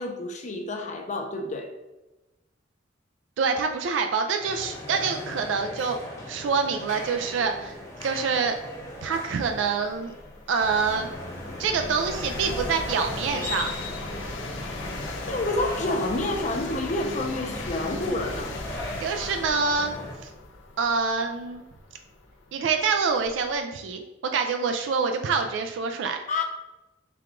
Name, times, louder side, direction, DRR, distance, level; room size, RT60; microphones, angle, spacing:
voice 1, 0.0-1.7 15.3-18.5 26.3-26.4, left 2 dB, 40° left, 3 dB, 0.6 m, -29 dB
voice 2, 3.4-6.0 6.3-7.8 8.0-8.6 9.0-10.1 10.5-11.1 11.6-13.7 19.0-19.9 20.2-20.3 20.8-21.6 22.5-26.2, right 5 dB, 80° right, 6 dB, 0.3 m, -26 dB
sound 1, 4.4-20.1, left 1 dB, 15° left, 1.0 m, -38 dB
sound 2, 8.1-8.2 8.8-23.6, left 2 dB, 90° left, 0.6 m, -38 dB
4.7 x 2.3 x 3.6 m, 1.0 s
head